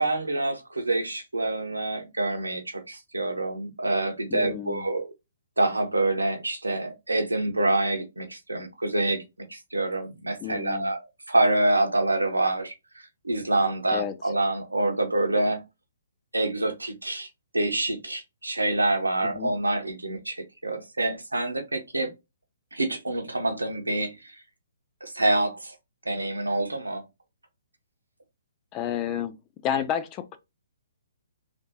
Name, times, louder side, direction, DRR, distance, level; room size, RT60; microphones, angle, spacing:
voice 1, 0.0-5.1 5.6-9.2 9.5-11.0 11.3-12.7 13.2-15.6 16.3-17.3 17.5-22.1 22.7-24.4 25.0-25.7 26.0-27.0, right 2 dB, 85° right, 0.9 m, -26 dB
voice 2, 4.3-4.9 10.4-10.9 13.9-14.2 19.2-19.5 28.7-29.4 29.6-30.4, left 10 dB, 25° left, 0.5 m, -30 dB
3.4 x 2.5 x 2.9 m
figure-of-eight pair, 130°, 0 cm